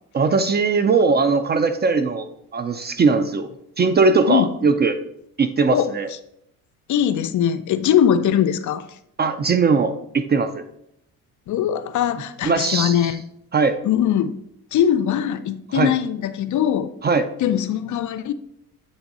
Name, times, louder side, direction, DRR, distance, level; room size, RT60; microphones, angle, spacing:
voice 1, 0.1-2.3 2.5-3.5 3.8-5.0 5.4-6.1 9.2-10.6 12.4-13.0 13.5-13.8 15.7-15.9 17.0-17.2, right 4 dB, 25° right, 0.3 m, -19 dB
voice 2, 6.9-8.9 11.5-13.2 13.8-14.4 14.7-16.9 17.4-18.3, left 9 dB, 50° left, 0.5 m, -21 dB
7.9 x 3.5 x 4.1 m
cardioid pair, 95°, 39 cm